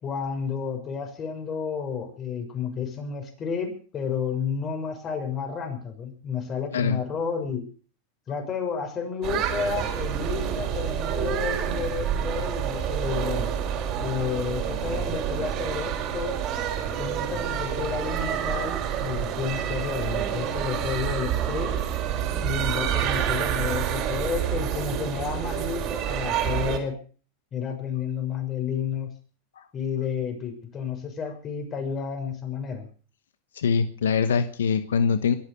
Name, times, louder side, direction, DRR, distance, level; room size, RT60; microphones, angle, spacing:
voice 1, 0.0-7.7 8.3-13.5 14.0-16.4 17.0-21.7 22.4-27.0 27.5-29.1 29.7-32.9, left 6 dB, 35° left, 5 dB, 6.4 m, -31 dB
sound 1, 9.2-26.8, right 9 dB, 50° right, 4.8 m, -28 dB
voice 2, 33.5-35.4, left 6 dB, 90° left, 12 dB, 1.1 m, -23 dB
22.5 x 8.9 x 6.9 m, 0.41 s
hypercardioid pair, 105°, 0 cm